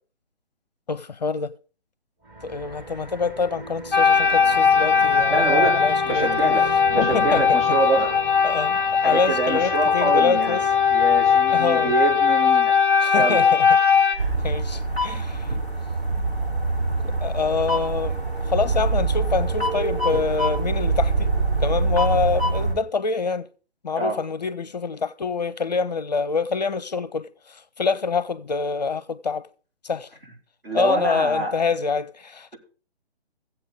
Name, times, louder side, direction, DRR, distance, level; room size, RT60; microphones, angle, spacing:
voice 1, 0.9-1.5 2.4-6.5 7.0-7.4 8.4-10.6 11.5-11.9 13.0-13.7 14.4-15.5 17.2-18.2 18.5-21.3 21.6-23.5 23.8-29.5 29.8-30.1 30.7-32.5, left 4 dB, 40° left, 0.5 m, -26 dB
sound 1, 2.2-12.8, right 3 dB, 15° right, 1.2 m, -39 dB
sound 2, 3.9-14.2, left 6 dB, 5° left, 0.9 m, -19 dB
voice 2, 5.3-8.2 9.0-10.6 10.9-12.8 13.1-13.4 14.1-14.4 14.9-15.2 23.9-24.2 30.6-31.6, right 3 dB, 60° right, 4.7 m, -26 dB
sound 3, 14.2-22.7, right 2 dB, 75° right, 7.3 m, -24 dB
15.0 x 8.0 x 5.0 m
figure-of-eight pair, 140°, 32 cm